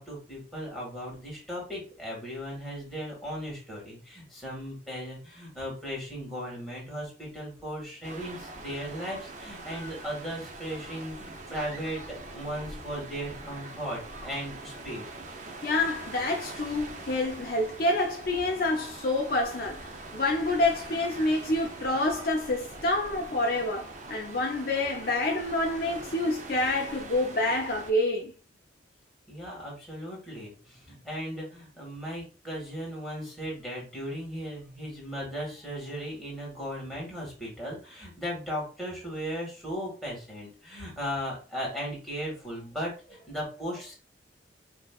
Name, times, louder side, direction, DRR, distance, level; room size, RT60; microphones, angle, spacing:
voice 1, 0.0-15.1 29.3-43.9, equal, ahead, 2.0 m, -37 dB
sound 1, 8.0-27.9, right 2 dB, 40° right, 0.6 m, -43 dB
voice 2, 15.6-28.3, left 2 dB, 50° left, 0.6 m, -28 dB
5.3 x 3.0 x 2.4 m
head